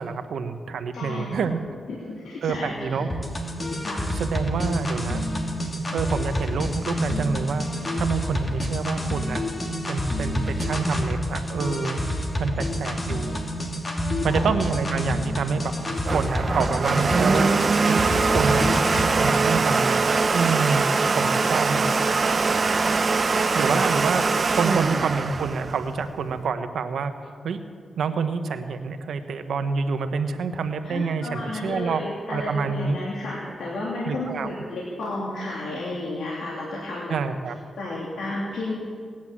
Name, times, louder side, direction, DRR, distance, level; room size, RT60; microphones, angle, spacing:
voice 1, 0.0-1.6 2.4-3.1 4.2-5.2 5.9-7.7 8.0-9.4 9.9-12.0 12.4-13.4 14.2-15.7 16.1-18.7 19.0-20.8 21.1-21.9 23.5-24.2 24.5-27.1 27.4-27.6 28.0-32.0 32.3-33.0 34.1-34.5 37.1-37.5, right 5 dB, 80° right, 8 dB, 1.1 m, -27 dB
voice 2, 0.9-1.3 1.9-3.1 3.8-4.2 14.2-14.5 16.5-16.6 20.7-21.4 23.6-23.8 30.8-37.2 37.8-38.7, left 2 dB, 85° left, -5 dB, 2.9 m, -32 dB
sound 1, 3.1-19.1, equal, 35° left, 2.7 m, -28 dB
Domestic sounds home sounds, 15.7-26.4, right 4 dB, 50° right, 0.8 m, -22 dB
18.5 x 10.5 x 7.5 m, 2.1 s
cardioid pair, 70°, 0 cm